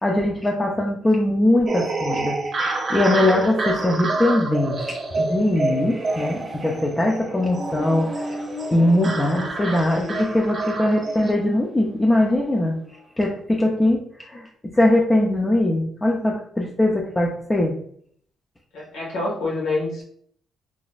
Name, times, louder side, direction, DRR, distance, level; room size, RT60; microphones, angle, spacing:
voice 1, 0.0-2.4 2.9-8.2 8.7-12.8 13.2-14.5 14.7-17.7, left 1 dB, 20° left, -1 dB, 0.5 m, -21 dB
sound 1, 1.7-11.3, right 2 dB, 45° right, 0.8 m, -28 dB
Accelerating revving vroom, 2.7-13.2, left 2 dB, 10° right, 0.9 m, -39 dB
voice 2, 18.7-20.0, left 2 dB, 85° left, -4 dB, 1.4 m, -26 dB
3.8 x 2.4 x 2.4 m, 0.62 s
cardioid pair, 90°, 0 cm